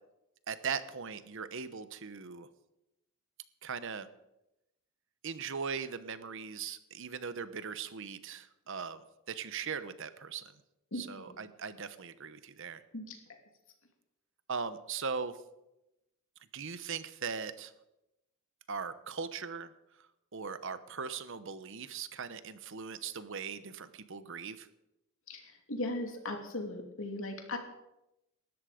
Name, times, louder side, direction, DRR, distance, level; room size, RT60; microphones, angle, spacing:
voice 1, 0.5-2.5 3.6-4.1 5.2-9.0 9.3-10.4 11.0-12.8 14.5-15.4 16.5-17.7 18.7-19.7 20.3-24.7, right 6 dB, 60° right, 13 dB, 1.0 m, -39 dB
voice 2, 10.9-11.4 12.9-13.2 25.3-27.6, left 2 dB, 65° left, 3 dB, 2.8 m, -38 dB
19.0 x 13.0 x 5.1 m, 0.90 s
head